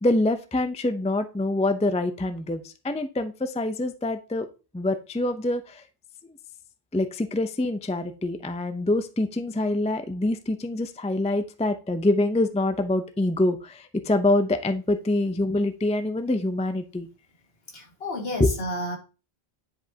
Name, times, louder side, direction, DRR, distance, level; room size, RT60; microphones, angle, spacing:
voice 1, 0.0-4.5 4.7-5.8 6.2-6.4 6.9-17.1 18.4-18.5, left 2 dB, 10° left, 9 dB, 0.3 m, -25 dB
voice 2, 17.7-19.0, left 1 dB, 60° left, 1 dB, 2.0 m, -31 dB
10.0 x 5.2 x 2.8 m, 0.32 s
omnidirectional pair, 1.1 m